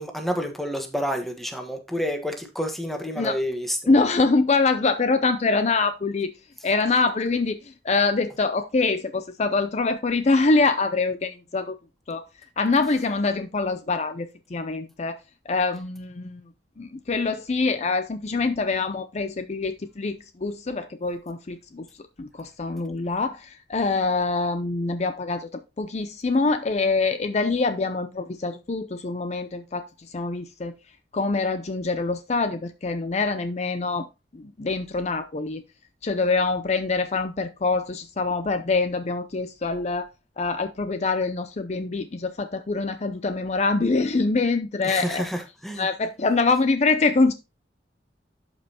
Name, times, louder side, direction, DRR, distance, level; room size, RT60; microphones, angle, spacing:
voice 1, 0.0-3.9 44.8-45.9, equal, ahead, 1.3 m, -29 dB
voice 2, 3.9-6.3 6.6-11.7 12.1-12.2 12.6-15.2 15.5-16.4 16.8-21.9 22.2-25.5 25.8-30.7 31.1-34.1 34.3-35.6 36.0-40.1 40.4-45.3 45.8-47.3, left 3 dB, 40° left, 0.5 m, -24 dB
11.5 x 5.4 x 2.9 m
head